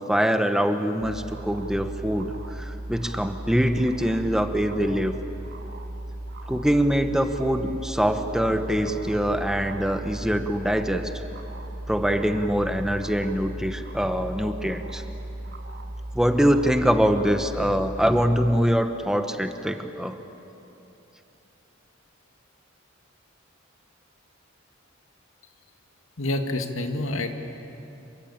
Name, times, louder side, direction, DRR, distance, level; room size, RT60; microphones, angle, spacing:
voice 1, 0.0-5.1 6.5-11.1 11.9-15.0 16.1-20.2, equal, 5° right, 7 dB, 1.1 m, -24 dB
sound 1, 1.0-18.6, right 1 dB, 55° right, 2.3 m, -37 dB
voice 2, 26.2-27.3, left 2 dB, 90° left, 5 dB, 2.2 m, -27 dB
28.0 x 23.5 x 8.7 m, 2.9 s
head